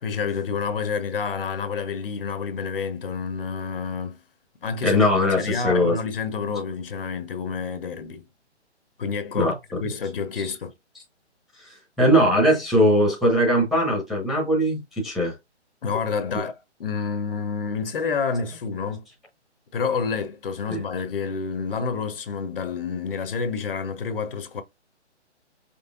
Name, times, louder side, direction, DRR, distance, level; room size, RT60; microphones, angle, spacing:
voice 1, 0.0-4.2 4.6-5.0 5.4-8.2 9.0-9.5 9.8-10.7 15.8-16.5 16.8-19.0 19.7-24.6, left 5 dB, 50° left, 0.9 m, -28 dB
voice 2, 4.8-5.9 9.3-9.5 12.0-15.3 20.7-20.8, equal, ahead, 1.0 m, -20 dB
5.4 x 3.4 x 2.3 m
figure-of-eight pair, 140°, 35 cm